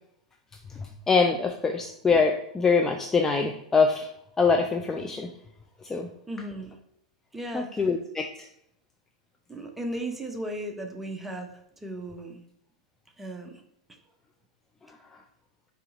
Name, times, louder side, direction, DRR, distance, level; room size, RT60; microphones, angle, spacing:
voice 1, 1.1-4.1 4.4-5.3 5.8-6.1 7.5-8.3, left 4 dB, 15° left, 3 dB, 0.3 m, -24 dB
voice 2, 6.3-6.8 7.3-7.9 9.5-12.4 13.2-13.6 13.9-14.0, right 1 dB, 5° right, 4 dB, 0.8 m, -36 dB
5.6 x 2.4 x 3.9 m, 0.74 s
figure-of-eight pair, 95°, 3 cm